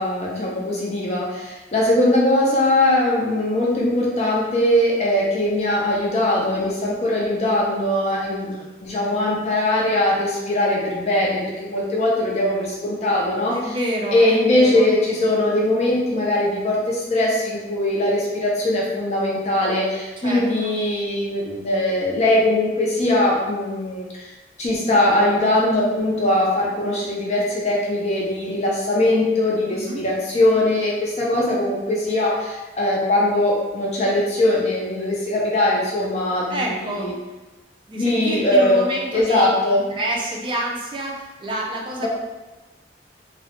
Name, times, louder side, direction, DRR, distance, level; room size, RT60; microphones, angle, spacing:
voice 1, 0.0-8.5 8.8-13.6 14.1-24.3 24.6-37.1 38.0-38.8 39.1-39.8 42.0-42.1, left 1 dB, 40° left, -4 dB, 0.5 m, -21 dB
voice 2, 13.5-14.9 20.2-20.7 29.7-30.0 36.5-37.1 37.9-39.5 39.9-42.1, right 1 dB, 25° right, -2 dB, 0.4 m, -28 dB
2.3 x 2.0 x 2.8 m, 1.1 s
head